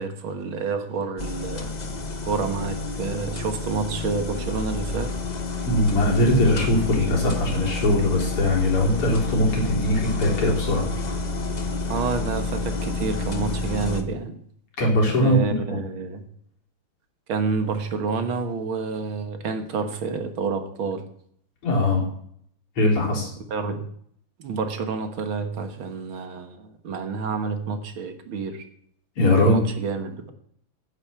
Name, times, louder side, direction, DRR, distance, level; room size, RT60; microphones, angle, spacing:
voice 1, 0.0-1.8 2.2-5.1 11.9-14.4 15.2-16.2 17.3-21.0 23.5-23.8 24.4-28.6 29.4-30.3, right 4 dB, 70° right, 7 dB, 2.2 m, -29 dB
sound 1, 1.2-14.0, left 3 dB, 40° left, 0.6 m, -29 dB
voice 2, 5.7-10.9 14.8-15.4 15.7-15.8 21.6-22.1 22.8-23.3 29.2-29.6, left 1 dB, 85° left, -1 dB, 4.4 m, -21 dB
10.0 x 9.1 x 6.8 m, 0.64 s
omnidirectional pair, 2.4 m